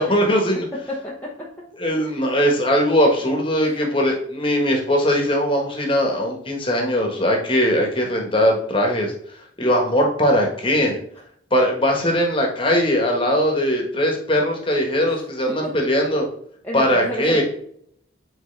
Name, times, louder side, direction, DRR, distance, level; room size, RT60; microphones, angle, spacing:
voice 1, 0.0-0.7 1.8-9.1 9.6-11.0 11.5-16.2 16.7-17.4, equal, 25° left, 1 dB, 1.4 m, -20 dB
voice 2, 0.7-1.5 2.1-2.2 15.0-15.2 15.5-16.0 16.6-17.4, left 1 dB, 10° left, -5 dB, 0.9 m, -31 dB
8.1 x 4.5 x 3.3 m, 0.67 s
head